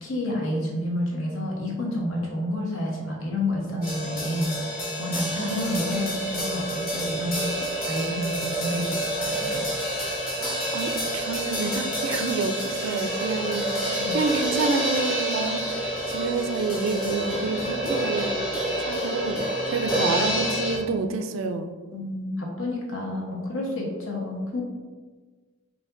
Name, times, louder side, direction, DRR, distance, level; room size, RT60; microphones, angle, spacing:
voice 1, 0.0-7.5 7.8-9.6 13.8-14.2 21.9-24.6, left 1 dB, 80° left, -2 dB, 1.0 m, -30 dB
sound 1, 3.8-20.8, right 1 dB, 45° left, 1.2 m, -28 dB
voice 2, 5.4-6.2 10.4-13.7 14.1-18.3 18.8-19.4 19.7-21.7, right 4 dB, 70° right, 8 dB, 0.4 m, -29 dB
5.1 x 2.8 x 2.5 m, 1.4 s
head